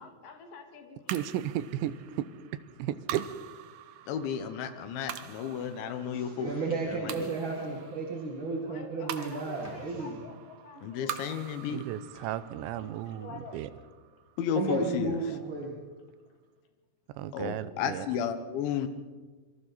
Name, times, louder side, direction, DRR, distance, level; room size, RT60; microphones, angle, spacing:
voice 1, 0.0-1.2 8.6-11.4 12.6-13.6, left 4 dB, 55° left, 4 dB, 3.3 m, -48 dB
sound 1, 1.1-15.6, right 11 dB, 75° right, 2.5 m, -45 dB
voice 2, 1.1-2.3 2.8-3.3 10.8-10.9 11.7-13.7 17.1-18.1, right 12 dB, 90° right, 13 dB, 3.1 m, -34 dB
voice 3, 4.1-7.3 10.8-11.8 14.4-15.2 17.3-18.9, left 7 dB, 90° left, 9 dB, 3.6 m, -33 dB
voice 4, 6.1-10.2 14.5-15.7, right 3 dB, 40° right, -2 dB, 2.0 m, -33 dB
sound 2, 6.4-8.1 9.1-10.0 12.1-12.4, left 1 dB, 15° left, 1.3 m, -54 dB
26.0 x 24.0 x 4.2 m, 1.4 s
omnidirectional pair, 5.1 m